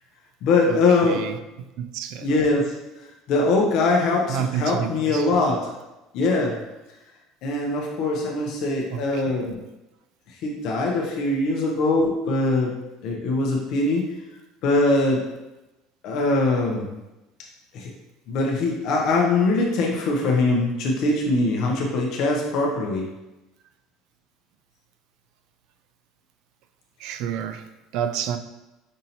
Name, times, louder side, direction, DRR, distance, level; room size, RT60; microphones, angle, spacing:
voice 1, 0.4-1.3 2.2-2.8 3.3-5.7 6.1-6.6 7.4-9.6 10.4-14.1 14.6-15.3 16.0-16.9 17.7-17.9 18.3-23.1, left 2 dB, 60° left, -1 dB, 0.6 m, -22 dB
voice 2, 1.0-1.4 1.8-2.3 4.3-5.3 8.9-9.4 27.0-28.4, right 8 dB, 70° right, 10 dB, 0.3 m, -29 dB
5.3 x 2.7 x 2.8 m, 1.0 s
supercardioid pair, 115°, 0 cm